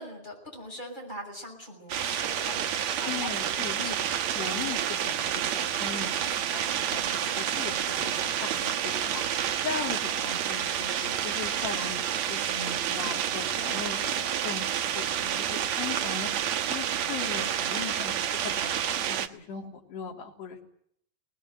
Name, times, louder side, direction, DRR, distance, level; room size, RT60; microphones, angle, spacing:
voice 1, 0.0-4.3 6.9-7.5, equal, 10° left, 0 dB, 7.1 m, -42 dB
sound 1, 1.9-19.3, right 10 dB, 75° right, 1.6 m, -29 dB
voice 2, 3.1-4.0 4.4-20.6, left 6 dB, 80° left, -1 dB, 5.3 m, -39 dB
21.0 x 19.5 x 9.6 m, 0.66 s
omnidirectional pair, 4.8 m